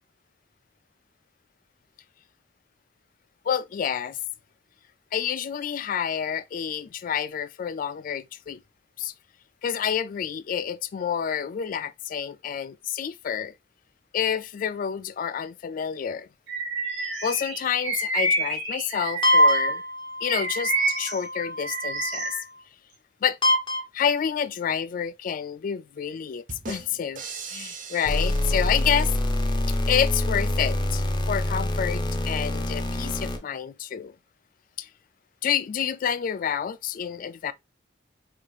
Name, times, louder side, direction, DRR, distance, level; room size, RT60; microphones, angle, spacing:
voice 1, 3.5-4.2 5.1-8.6 9.0-9.1 9.6-13.5 14.1-16.3 17.2-19.8 20.2-22.4 23.2-23.4 23.9-27.2 27.5-29.1 29.7-34.1 34.8-34.9 35.4-37.5, left 8 dB, 45° left, 0.3 m, -28 dB
Bird vocalization bird call bird song, 16.5-19.8 20.2-22.4, right 2 dB, 85° right, 1.3 m, -29 dB
sound 1, 19.2-22.6 23.4-23.8 28.1-33.4, left 1 dB, 25° left, 0.8 m, -25 dB
sound 2, 26.5-29.3, right 5 dB, 45° right, 0.7 m, -40 dB
4.8 x 2.8 x 2.3 m
head